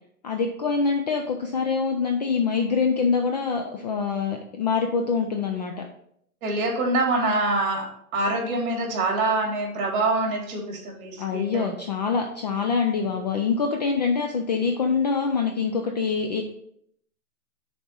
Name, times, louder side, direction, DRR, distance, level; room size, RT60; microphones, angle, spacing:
voice 1, 0.2-5.7 11.2-16.4, left 5 dB, 30° left, 3 dB, 0.4 m, -25 dB
voice 2, 6.4-7.9 8.1-11.7, right 2 dB, 35° right, -1 dB, 3.0 m, -25 dB
6.8 x 4.3 x 4.6 m, 0.70 s
hypercardioid pair, 140°, 46 cm